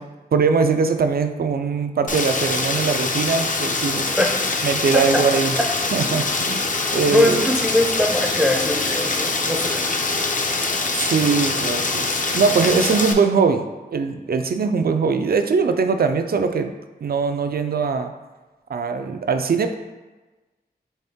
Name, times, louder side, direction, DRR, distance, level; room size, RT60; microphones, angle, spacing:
voice 1, 0.3-4.1 4.6-5.6 5.9-6.6 6.9-7.5 11.0-16.7 17.0-18.1 18.7-19.7, right 5 dB, 60° right, 8 dB, 0.4 m, -21 dB
Rain, 2.1-13.1, left 3 dB, 50° left, 0.5 m, -24 dB
voice 2, 7.1-9.9, left 1 dB, 5° right, 1 dB, 0.5 m, -21 dB
4.2 x 3.5 x 3.5 m, 1.2 s
wide cardioid pair, 70°, 18 cm